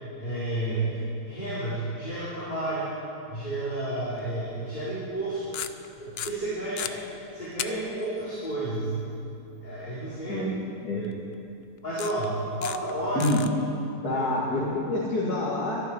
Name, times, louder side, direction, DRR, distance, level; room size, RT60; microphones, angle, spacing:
voice 1, 0.2-1.0 1.2-2.9 3.3-5.6 6.0-7.0 7.3-9.0 9.6-10.4 10.9-11.0 11.8-13.2 14.0-14.2, right 1 dB, 30° left, -10 dB, 3.7 m, -31 dB
sound 1, 4.2-4.3 5.4-5.9 6.2-6.9 7.6-7.7 8.0-8.1 11.0-11.1 12.0-12.2 12.6-12.9 13.2-13.5, left 10 dB, 65° left, 0.6 m, -33 dB
voice 2, 10.8-11.2 13.1-13.4 14.0-15.8, left 2 dB, 85° left, -7 dB, 2.8 m, -27 dB
23.5 x 11.5 x 4.6 m, 2.6 s
omnidirectional pair, 1.6 m